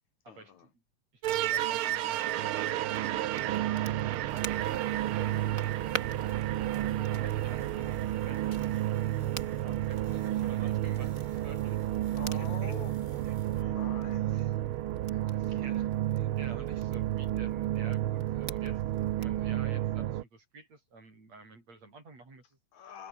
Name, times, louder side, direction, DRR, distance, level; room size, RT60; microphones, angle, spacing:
voice 1, 0.3-0.7 3.9-4.2 12.2-13.0 13.5-14.6 15.1-15.6 22.7-23.1, left 8 dB, 65° left, 3.3 m, -47 dB
voice 2, 1.1-3.4 4.3-6.4 6.9-9.1 9.6-11.8 12.3-12.7 14.4-14.5 15.3-18.8 19.2-22.6, right 3 dB, 55° right, 8.8 m, -51 dB
sound 1, 1.2-20.2, right 13 dB, 90° right, 1.1 m, -31 dB
Crackle, 2.8-19.4, right 2 dB, 25° right, 5.9 m, -48 dB
sound 2, 4.3-13.6, left 2 dB, 15° left, 3.2 m, -58 dB
omnidirectional pair, 3.5 m